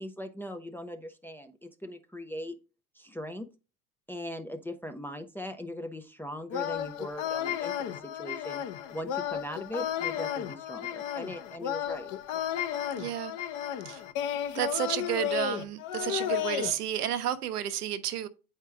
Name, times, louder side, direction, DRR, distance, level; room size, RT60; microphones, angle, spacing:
voice 1, 0.0-2.6 3.0-3.5 4.1-8.6 8.9-12.1, equal, 5° left, 0.4 m, -40 dB
sound 1, 6.5-16.7, left 10 dB, 45° left, 0.8 m, -33 dB
voice 2, 13.0-13.3 13.8-14.0 14.5-18.3, right 11 dB, 85° right, 0.8 m, -31 dB
8.1 x 4.5 x 3.5 m
hypercardioid pair, 90°, 45 cm